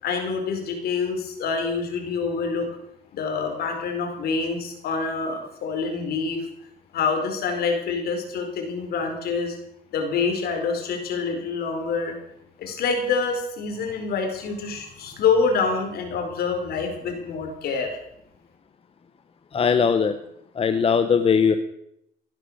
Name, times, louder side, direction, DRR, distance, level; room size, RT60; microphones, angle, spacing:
voice 1, 0.0-2.7 3.1-6.5 6.9-9.6 9.9-12.1 12.6-18.0, left 4 dB, 65° left, 4 dB, 4.5 m, -26 dB
voice 2, 19.5-20.2 20.6-21.6, left 6 dB, 35° left, 8 dB, 1.2 m, -19 dB
17.0 x 10.5 x 6.5 m, 0.77 s
cardioid pair, 110°, 17 cm